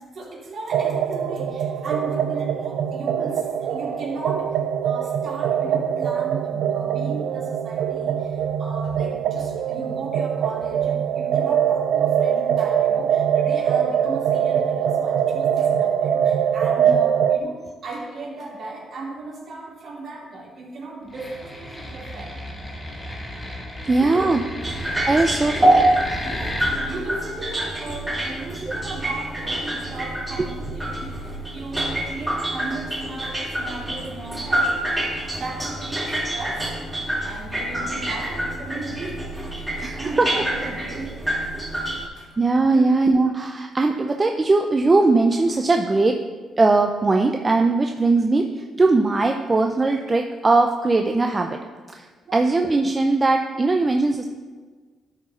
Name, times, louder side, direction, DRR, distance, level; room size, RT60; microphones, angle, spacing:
voice 1, 0.1-4.6 4.8-22.4 23.8-24.3 26.2-36.7 37.2-39.2 39.5-41.2 42.2-42.3 42.7-42.8 52.3-52.4, right 3 dB, 55° right, -2 dB, 2.5 m, -36 dB
sound 1, 0.7-17.4, right 8 dB, 80° right, 0.4 m, -23 dB
sound 2, 21.1-26.7, left 1 dB, 15° left, 2.1 m, -33 dB
voice 2, 23.9-24.4 25.1-25.9 28.6-28.7 39.8-40.3 42.4-46.2 46.6-51.6 51.9-52.1 52.3-54.2, right 3 dB, 25° right, 3 dB, 0.6 m, -20 dB
sound 3, 24.6-42.1, right 1 dB, 10° right, 3.0 m, -26 dB
12.5 x 4.8 x 4.3 m, 1.4 s
cardioid pair, 90°, 0 cm